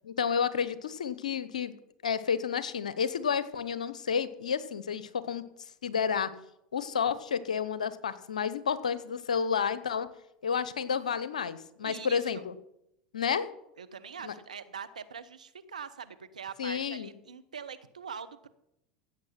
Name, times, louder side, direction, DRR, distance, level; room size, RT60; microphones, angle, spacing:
voice 1, 0.0-1.7 2.0-5.4 5.8-6.3 6.7-10.1 10.4-12.5 13.1-13.5 14.2-14.3 16.6-17.1, left 7 dB, 85° left, 15 dB, 0.9 m, -30 dB
voice 2, 11.8-12.4 13.8-18.5, right 6 dB, 85° right, 11 dB, 1.0 m, -43 dB
16.0 x 8.1 x 5.8 m, 0.81 s
hypercardioid pair, 85°, 4 cm